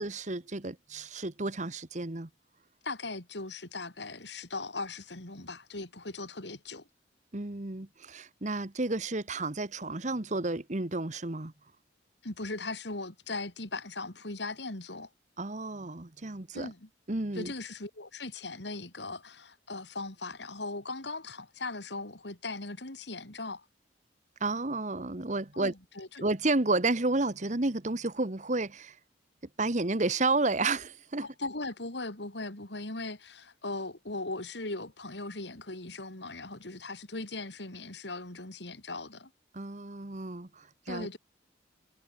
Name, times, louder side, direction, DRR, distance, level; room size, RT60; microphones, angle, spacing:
voice 1, 0.0-2.3 7.3-11.5 15.4-16.7 17.1-17.5 24.4-25.7 26.2-29.0 29.6-31.3 39.5-41.1, right 2 dB, 40° right, 1.3 m, -31 dB
voice 2, 2.8-6.9 12.2-15.1 16.5-16.9 17.3-23.6 25.5-26.2 31.2-39.3 40.9-41.2, left 3 dB, 65° left, 3.1 m, -39 dB
head